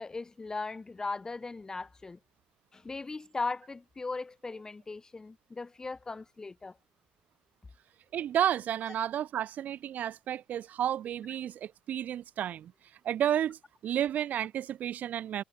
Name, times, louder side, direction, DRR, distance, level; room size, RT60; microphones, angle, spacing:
voice 1, 0.0-2.2 2.7-6.8, left 3 dB, 20° left, 1.2 m, -38 dB
voice 2, 8.1-12.7 13.0-15.4, right 10 dB, 55° right, 0.9 m, -31 dB
cardioid pair, 105°, 3 cm